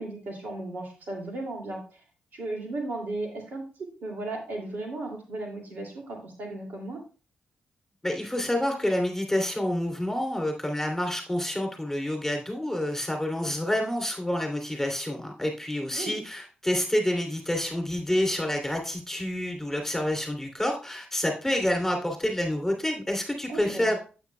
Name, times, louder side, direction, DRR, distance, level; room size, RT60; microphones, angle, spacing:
voice 1, 0.0-2.0 2.3-7.0 15.9-16.2 23.5-23.9, right 2 dB, 70° right, 1 dB, 2.5 m, -35 dB
voice 2, 8.0-24.0, left 1 dB, 10° left, 2 dB, 3.0 m, -28 dB
9.2 x 8.1 x 2.3 m, 0.35 s
supercardioid pair, 55°, 3 cm